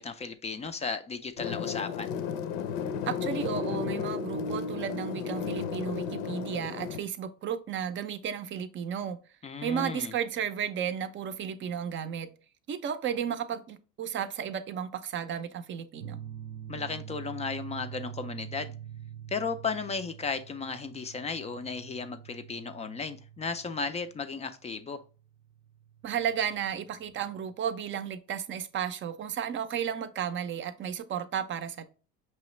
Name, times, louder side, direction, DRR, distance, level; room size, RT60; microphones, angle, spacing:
voice 1, 0.0-2.1 9.4-10.1 16.7-18.7 19.3-25.0, left 4 dB, 20° left, 0.3 m, -35 dB
sound 1, 1.4-7.0, left 6 dB, 85° left, 0.7 m, -33 dB
voice 2, 3.0-9.2 9.6-12.3 12.7-16.2 26.0-31.8, right 8 dB, 35° right, 0.5 m, -33 dB
sound 2, 16.0-27.2, right 10 dB, 85° right, 0.6 m, -45 dB
5.7 x 3.1 x 3.1 m
cardioid pair, 125°, 34 cm